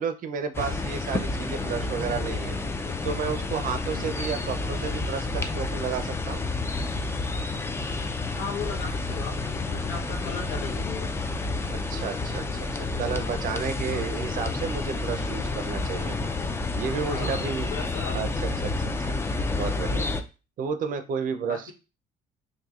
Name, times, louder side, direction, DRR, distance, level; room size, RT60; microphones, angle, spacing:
voice 1, 0.0-2.6 3.0-6.4 11.9-16.1 16.7-17.7 18.1-19.2 19.5-20.1 20.6-21.7, right 6 dB, 55° right, 9 dB, 0.5 m, -32 dB
sound 1, 0.5-20.2, left 3 dB, 15° left, 0.3 m, -30 dB
voice 2, 3.9-4.3 8.3-11.2 13.9-14.3 17.0-18.2 19.1-19.5 21.4-21.7, left 5 dB, 75° left, 2 dB, 0.8 m, -38 dB
4.1 x 2.6 x 2.3 m, 0.31 s
cardioid pair, 110°, 17 cm